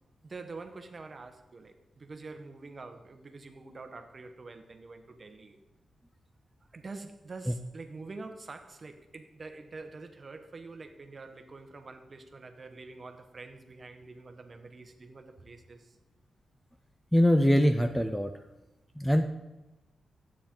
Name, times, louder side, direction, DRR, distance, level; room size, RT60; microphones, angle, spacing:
voice 1, 0.2-5.6 6.7-16.0, right 3 dB, 30° right, 7 dB, 0.9 m, -46 dB
voice 2, 17.1-18.3 19.0-19.3, equal, ahead, 7 dB, 0.4 m, -23 dB
13.0 x 8.7 x 3.7 m, 1.1 s
wide cardioid pair, 165°, 0 cm